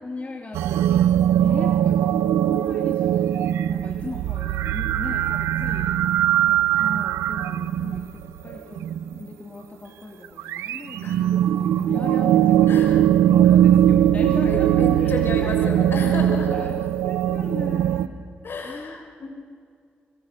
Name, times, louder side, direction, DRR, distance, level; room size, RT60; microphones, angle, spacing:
voice 1, 0.0-5.9 6.5-13.0 13.3-15.7 16.5-18.1 18.6-19.0, left 2 dB, 30° left, 1 dB, 3.3 m, -38 dB
sound 1, 0.5-9.2 10.2-18.1, right 11 dB, 85° right, 0.8 m, -20 dB
voice 2, 12.7-13.1 13.4-13.7 14.4-16.7 18.4-19.3, left 4 dB, 55° left, 3 dB, 6.2 m, -32 dB
26.0 x 24.5 x 6.9 m, 2.3 s
supercardioid pair, 50°, 4 cm